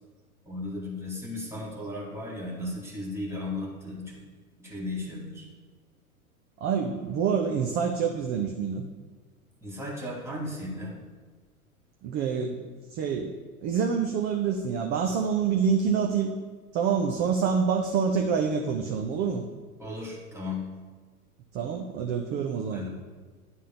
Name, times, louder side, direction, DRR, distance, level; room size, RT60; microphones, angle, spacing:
voice 1, 0.5-4.2 4.6-5.5 9.6-11.0 19.8-20.6 22.7-22.9, left 2 dB, 5° right, -3 dB, 1.7 m, -35 dB
voice 2, 6.6-8.8 12.0-12.6 12.9-13.3 13.6-16.3 16.7-19.4 21.5-22.8, right 6 dB, 25° right, 2 dB, 0.5 m, -26 dB
10.5 x 3.7 x 6.8 m, 1.4 s
figure-of-eight pair, 95°, 43 cm